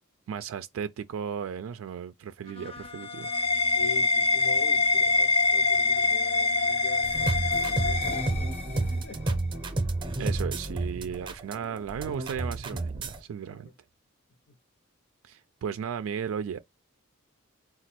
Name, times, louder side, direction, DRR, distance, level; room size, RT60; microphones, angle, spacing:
voice 1, 0.3-3.3 10.2-13.7 15.2-16.6, right 7 dB, 80° right, 0.3 m, -35 dB
sound 1, 2.5-8.9, left 3 dB, 30° left, 0.3 m, -25 dB
voice 2, 3.7-7.1 7.7-8.5 8.9-9.6 13.4-13.7 14.5-14.6, left 4 dB, 60° left, 0.8 m, -44 dB
sound 2, 7.0-13.2, right 2 dB, 25° right, 0.6 m, -31 dB
4.0 x 2.3 x 4.2 m
head